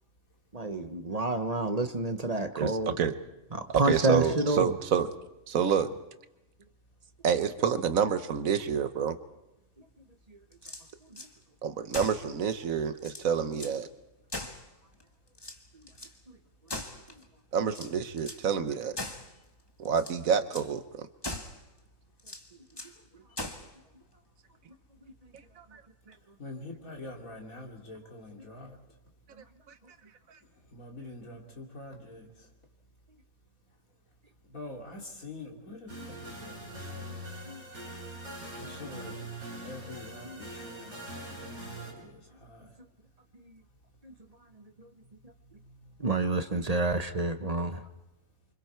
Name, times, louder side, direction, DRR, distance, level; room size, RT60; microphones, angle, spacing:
voice 1, 0.5-2.9 3.5-4.7 11.1-11.2 35.9-36.0 37.5-37.6 38.8-38.9 40.2-40.4 44.0-44.1 44.8-44.9 46.0-47.8, right 2 dB, 30° right, 8 dB, 1.0 m, -29 dB
voice 2, 2.6-3.2 3.7-5.1 5.5-5.9 7.2-9.2 11.6-13.9 17.5-19.0 19.8-21.1 25.6-25.8 30.3-30.4, right 7 dB, 80° right, 10 dB, 1.4 m, -28 dB
sound 1, 10.5-11.3 11.9-12.3 12.7-12.8 13.0-13.8 14.3-15.0 15.3-16.1 16.7-17.3 17.7-18.5 19.0-19.3 19.8-20.2 20.5-20.7 21.2-21.6 22.2-23.0 23.4-23.7, left 2 dB, 20° left, 1.4 m, -40 dB
voice 3, 26.4-28.8 30.7-32.3 34.5-37.2 38.6-39.2 39.6-42.6, left 2 dB, 85° left, 0 dB, 3.3 m, -45 dB
sound 2, 35.9-41.9, right 1 dB, 55° right, 5.9 m, -42 dB
28.5 x 25.0 x 4.6 m, 0.95 s
omnidirectional pair, 1.4 m